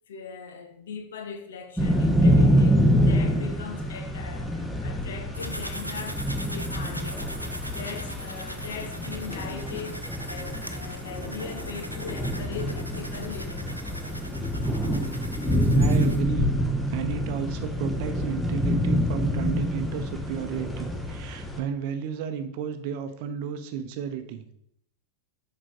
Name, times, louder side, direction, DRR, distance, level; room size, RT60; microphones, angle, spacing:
voice 1, 0.1-7.3 7.7-13.8, left 6 dB, 60° left, 0.9 m, -40 dB
sound 1, 1.8-21.6, equal, 5° left, 1.0 m, -26 dB
sound 2, 5.3-16.2, equal, 90° right, 0.6 m, -40 dB
voice 2, 15.7-16.5 16.9-24.5, right 7 dB, 45° right, 0.8 m, -33 dB
7.4 x 4.9 x 3.6 m
figure-of-eight pair, 90°, 0 cm